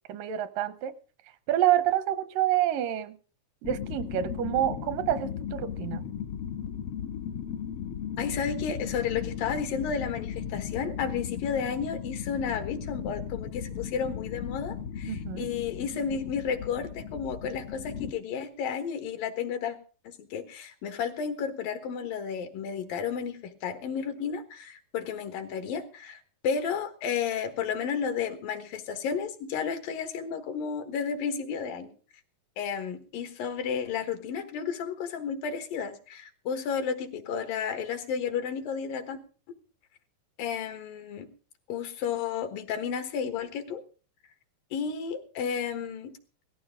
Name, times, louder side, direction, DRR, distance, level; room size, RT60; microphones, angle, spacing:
voice 1, 0.1-1.0 1.5-3.2 3.6-6.1 15.1-15.5, right 12 dB, 85° right, 13 dB, 2.5 m, -28 dB
sound 1, 3.6-18.1, left 8 dB, 70° left, 1.5 m, -36 dB
voice 2, 8.2-19.8 20.0-31.9 32.6-39.2 40.4-41.3 41.7-43.8 44.7-46.1, left 7 dB, 90° left, 8 dB, 3.2 m, -32 dB
18.0 x 14.0 x 3.7 m, 0.37 s
omnidirectional pair, 3.9 m